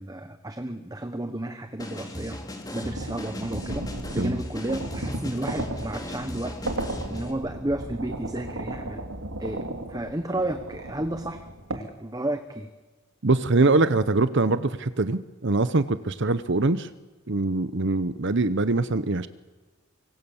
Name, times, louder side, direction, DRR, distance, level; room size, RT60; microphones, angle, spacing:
voice 1, 0.0-2.4 2.7-6.6 7.1-9.0 9.4-12.7, right 1 dB, 15° right, 8 dB, 1.1 m, -32 dB
sound 1, 1.8-7.3, left 1 dB, 15° left, 2.9 m, -37 dB
sound 2, 2.8-11.8, right 1 dB, 80° right, 2.7 m, -35 dB
voice 2, 13.2-16.9 17.3-19.3, right 3 dB, 55° right, 13 dB, 0.9 m, -23 dB
25.0 x 24.5 x 7.2 m, 1.3 s
head